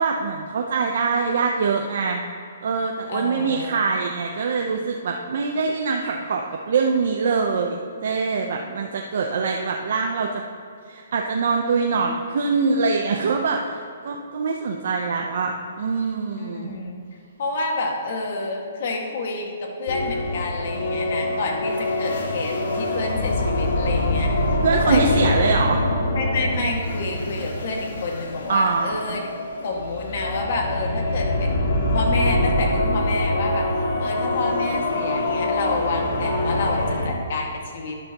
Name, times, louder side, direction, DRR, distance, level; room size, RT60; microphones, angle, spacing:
voice 1, 0.0-2.2 2.6-10.3 10.9-16.7 24.6-25.8 28.5-29.2, right 4 dB, 55° right, 1 dB, 0.8 m, -24 dB
voice 2, 3.1-3.9 16.3-17.0 17.4-25.3 26.1-29.3 29.6-31.5 31.9-33.7 34.0-38.0, left 3 dB, 50° left, 1 dB, 1.9 m, -29 dB
sound 1, 19.9-37.1, left 1 dB, 70° left, 2.2 m, -24 dB
12.0 x 10.5 x 3.0 m, 2.4 s
hypercardioid pair, 165°, 0 cm